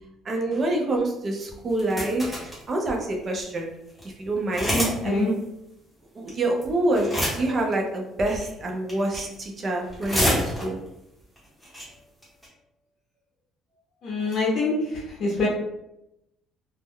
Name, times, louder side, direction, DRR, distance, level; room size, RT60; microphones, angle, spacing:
voice 1, 0.3-3.7 4.2-4.7 5.0-5.4 6.2-10.8, right 1 dB, 25° right, 1 dB, 0.4 m, -26 dB
sound 1, 1.7-2.6 3.2-3.3 3.5-3.6 3.9-4.0 4.5-5.0 5.2-5.3 6.3-6.6 6.9-7.6 8.3-8.5 8.9-9.3 9.7-10.9 11.4-11.5 11.6-11.8 12.2-12.5, equal, ahead, 0.8 m, -27 dB
voice 2, 4.7-5.3 14.0-15.5, left 2 dB, 40° left, -6 dB, 0.6 m, -25 dB
2.2 x 2.0 x 3.5 m, 0.85 s
cardioid pair, 175°, 0 cm